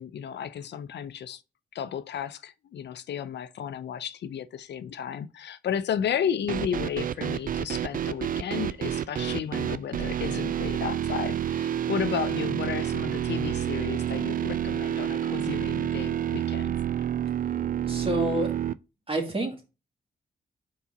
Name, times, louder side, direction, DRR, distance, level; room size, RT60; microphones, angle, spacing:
voice 1, 0.0-1.4 1.7-16.8, left 8 dB, 75° left, 0.5 m, -33 dB
sound 1, 6.5-18.7, right 10 dB, 50° right, 0.4 m, -29 dB
voice 2, 17.9-18.5 19.1-19.7, right 2 dB, 30° right, 2.3 m, -28 dB
4.6 x 4.0 x 5.2 m
supercardioid pair, 40°, 18 cm